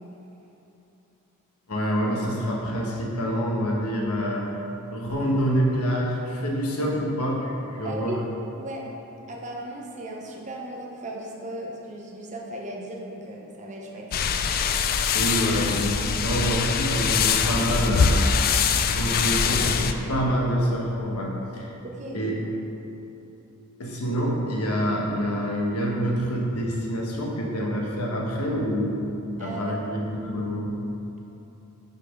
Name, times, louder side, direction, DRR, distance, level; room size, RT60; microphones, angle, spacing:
voice 1, 1.7-4.5 4.9-8.1 15.1-18.2 18.9-21.7 22.1-22.4 23.8-29.1 29.4-30.7, equal, 90° left, -2 dB, 1.1 m, -26 dB
voice 2, 7.8-8.2 8.6-8.8 9.3-14.1 21.8-22.2 29.4-30.4, right 1 dB, 35° right, -1 dB, 0.8 m, -36 dB
sound 1, 14.1-19.9, left 6 dB, 40° left, 0.3 m, -23 dB
5.3 x 4.2 x 5.2 m, 3.0 s
head